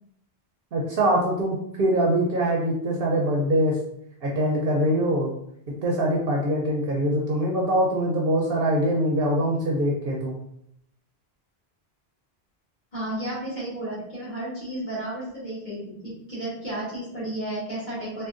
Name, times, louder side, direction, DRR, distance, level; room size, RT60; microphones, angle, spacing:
voice 1, 0.7-3.8 4.2-5.3 5.8-10.3, right 1 dB, 65° right, -3 dB, 0.8 m, -23 dB
voice 2, 12.9-18.3, right 1 dB, 45° left, -9 dB, 1.4 m, -33 dB
3.6 x 2.3 x 2.4 m, 0.73 s
omnidirectional pair, 1.1 m